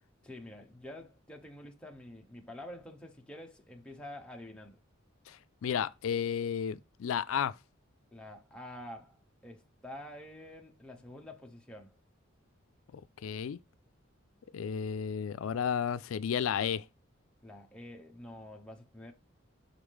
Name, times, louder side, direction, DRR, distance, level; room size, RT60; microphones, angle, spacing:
voice 1, 0.2-4.8 8.1-12.0 17.4-19.1, left 1 dB, 5° left, 1.0 m, -48 dB
voice 2, 5.3-7.5 13.2-13.6 14.5-16.9, left 8 dB, 80° left, 0.4 m, -32 dB
6.2 x 4.8 x 3.5 m
head